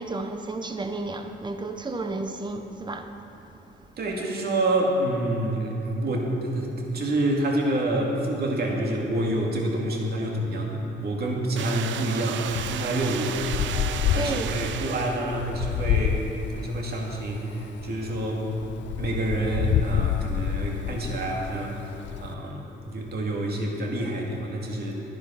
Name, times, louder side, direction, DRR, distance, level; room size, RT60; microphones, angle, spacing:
voice 1, 0.0-3.1 14.1-14.5, right 2 dB, 20° right, 7 dB, 0.9 m, -32 dB
voice 2, 4.0-13.7 14.0-16.2 16.5-18.5 19.0-21.8 22.2-25.0, right 1 dB, 55° right, -1 dB, 2.2 m, -27 dB
sound 1, 11.6-15.6, right 10 dB, 70° right, 0.5 m, -34 dB
Wind, 12.5-22.3, left 11 dB, 70° left, 0.4 m, -29 dB
11.5 x 9.9 x 5.8 m, 2.9 s
cardioid pair, 90°, 20 cm